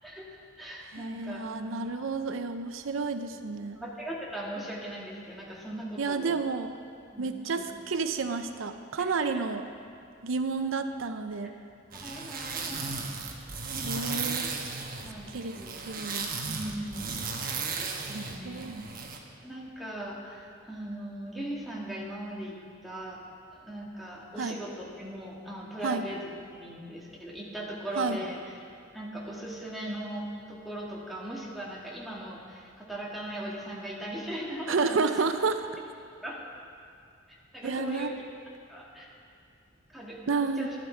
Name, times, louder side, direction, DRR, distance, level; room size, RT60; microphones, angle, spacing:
voice 1, 0.0-1.7 3.8-6.4 7.1-7.6 9.0-9.4 11.9-13.1 15.0-15.8 16.5-17.1 17.4-17.7 18.1-18.7 19.4-22.6 22.8-23.2 23.6-26.2 26.6-28.4 28.9-35.3 36.2-36.4 37.5-38.3 38.7-39.1 39.9-40.8, right 1 dB, ahead, -5 dB, 1.9 m, -39 dB
voice 2, 0.9-3.8 6.0-6.7 7.2-9.6 10.2-11.5 13.8-14.5 15.3-15.6 15.9-16.3 18.1-18.9 24.4-24.6 25.8-26.0 28.0-28.2 34.7-35.7 37.6-38.1 40.3-40.7, right 4 dB, 85° right, 8 dB, 0.6 m, -30 dB
sound 1, 11.9-19.2, right 4 dB, 50° right, 1.1 m, -35 dB
12.0 x 11.5 x 4.5 m, 2.4 s
head